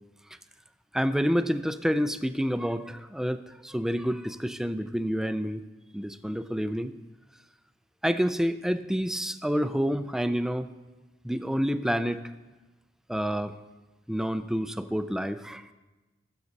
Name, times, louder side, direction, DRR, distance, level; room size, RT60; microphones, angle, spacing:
voice 1, 0.9-5.6 5.9-6.9 8.0-10.7 11.2-12.2 13.1-13.5 14.1-15.6, equal, 5° right, 10 dB, 0.4 m, -28 dB
19.5 x 6.9 x 4.1 m, 1.1 s
head